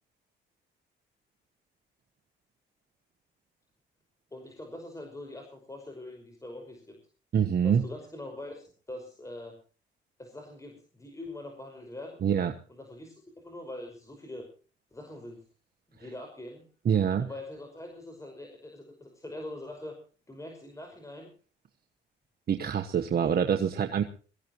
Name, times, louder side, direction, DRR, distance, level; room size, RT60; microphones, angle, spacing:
voice 1, 4.3-7.0 7.6-9.6 10.2-12.2 12.7-14.5 14.9-15.4 15.9-16.7 17.2-20.0 20.3-21.3 23.2-23.3, left 1 dB, 15° left, 3 dB, 5.5 m, -43 dB
voice 2, 7.3-7.8 12.2-12.5 16.8-17.3 22.5-24.0, right 8 dB, 50° right, 4 dB, 1.4 m, -25 dB
23.0 x 15.0 x 3.1 m, 0.37 s
cardioid pair, 90°, 20 cm